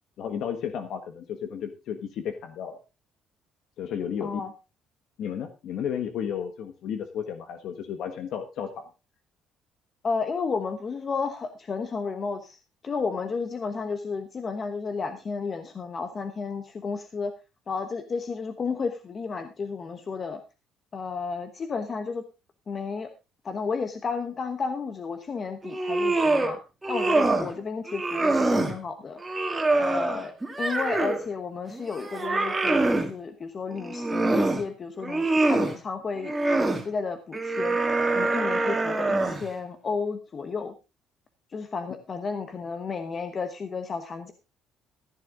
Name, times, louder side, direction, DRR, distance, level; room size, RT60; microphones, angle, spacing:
voice 1, 0.2-2.8 3.8-4.4 5.2-8.9, left 8 dB, 60° left, 7 dB, 1.3 m, -33 dB
voice 2, 4.2-4.5 10.0-12.6 12.8-17.3 17.7-20.4 20.9-22.2 22.7-23.1 23.4-26.6 26.9-29.2 29.8-30.3 30.6-36.3 36.8-37.8 38.1-40.7 41.5-44.3, left 5 dB, 30° left, 8 dB, 1.1 m, -32 dB
sound 1, 25.6-26.5 26.8-27.5 27.9-28.7 29.2-31.2 31.7-33.1 33.7-34.6 35.0-35.7 36.2-36.8 37.3-39.5, right 2 dB, 10° right, 2.0 m, -25 dB
15.0 x 10.0 x 3.7 m, 0.28 s
cardioid pair, 165°, 0 cm